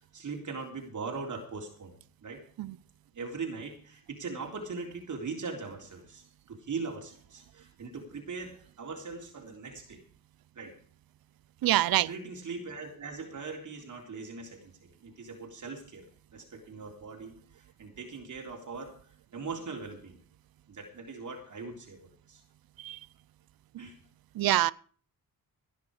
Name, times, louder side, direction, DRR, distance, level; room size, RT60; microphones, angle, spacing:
voice 1, 0.1-1.9 2.2-2.4 3.1-10.0 10.6-10.8 11.9-16.1 16.3-18.9 19.3-20.2 20.7-22.0 22.3-22.4 23.8-24.0, right 4 dB, 50° right, 3.9 m, -40 dB
voice 2, 11.6-12.1 22.8-23.0 24.4-24.7, right 14 dB, 65° right, 0.7 m, -25 dB
17.5 x 10.5 x 5.0 m
cardioid pair, 95°, 37 cm